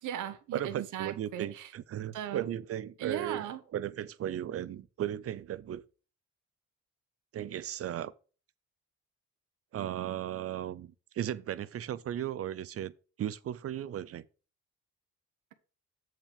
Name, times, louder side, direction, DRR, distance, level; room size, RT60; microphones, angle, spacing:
voice 1, 0.0-1.7 2.1-2.5 3.0-3.6, right 10 dB, 80° right, 1.0 m, -38 dB
voice 2, 0.5-3.5 3.7-5.8 7.3-8.1 9.7-12.9 13.2-14.2, right 11 dB, 50° right, 0.5 m, -36 dB
7.5 x 4.6 x 5.1 m
cardioid pair, 90°, 30 cm